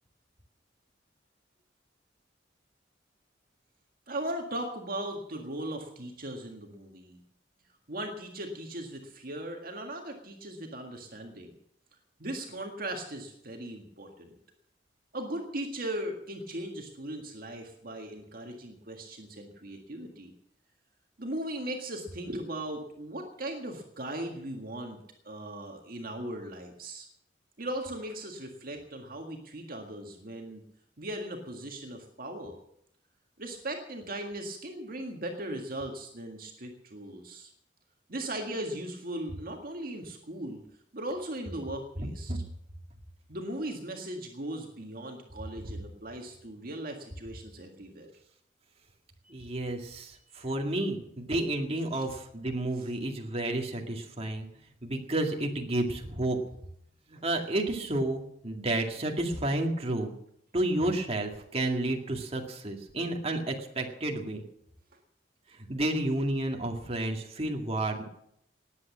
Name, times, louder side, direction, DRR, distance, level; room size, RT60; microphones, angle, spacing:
voice 1, 4.1-7.2 7.9-11.5 12.2-14.3 15.1-20.3 21.2-25.0 25.2-27.1 27.6-30.7 31.0-32.6 33.4-37.5 38.1-40.6 40.9-42.4 43.3-48.1 49.2-49.5 51.9-52.1 52.8-52.9, right 1 dB, 55° right, 2 dB, 1.8 m, -38 dB
voice 2, 49.3-54.5 54.8-56.4 57.1-60.2 60.5-64.4 65.7-68.0, right 1 dB, 35° right, 2 dB, 2.1 m, -31 dB
19.0 x 8.4 x 7.4 m, 0.72 s
head